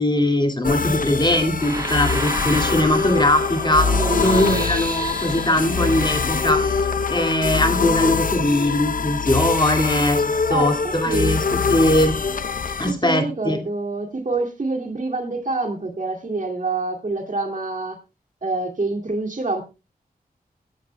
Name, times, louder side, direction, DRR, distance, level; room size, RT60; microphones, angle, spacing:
voice 1, 0.0-3.9 4.2-12.1 12.8-13.6, left 1 dB, 25° left, 5 dB, 2.1 m, -21 dB
sound 1, 0.6-12.9, left 5 dB, 60° left, 0.7 m, -24 dB
sound 2, 1.6-7.3, right 1 dB, 20° right, 2.0 m, -32 dB
voice 2, 3.9-4.7 10.5-11.4 12.9-18.0 18.4-19.6, right 3 dB, 55° right, 2 dB, 2.4 m, -26 dB
Wind instrument woodwind instrument, 7.0-10.9, left 9 dB, 90° left, 2.8 m, -37 dB
21.5 x 11.0 x 2.2 m, 0.27 s
wide cardioid pair, 65°, 16 cm